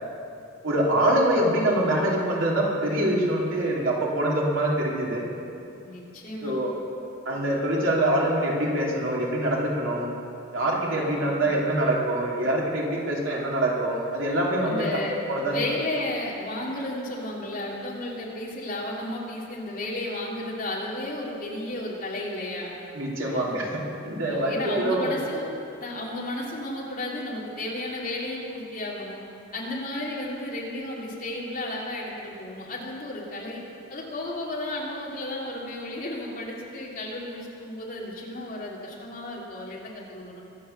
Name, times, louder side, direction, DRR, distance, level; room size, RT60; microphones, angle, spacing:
voice 1, 0.6-5.3 6.4-6.7 7.2-10.1 10.5-15.0 15.3-15.6 22.9-25.1, right 1 dB, 80° right, -3 dB, 3.0 m, -25 dB
voice 2, 5.8-6.5 11.1-11.4 14.6-15.1 15.5-22.7 23.3-23.6 24.2-25.4 25.8-29.2 29.5-33.6 33.9-40.4, left 1 dB, 45° left, -4 dB, 3.0 m, -33 dB
23.0 x 8.0 x 6.8 m, 2.6 s
head